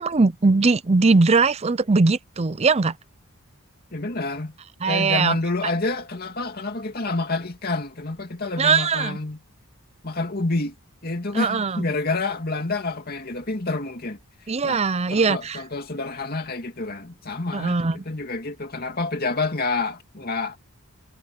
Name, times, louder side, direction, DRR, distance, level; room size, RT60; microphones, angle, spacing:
voice 1, 0.0-2.9 4.8-5.4 8.6-9.2 11.3-11.8 14.5-15.6 17.5-18.0, right 4 dB, 30° right, 0.5 m, -20 dB
voice 2, 3.9-4.5 4.9-9.4 10.0-10.7 11.0-14.2 14.6-14.8 15.1-17.8 18.0-20.6, left 3 dB, 45° left, 2.5 m, -28 dB
head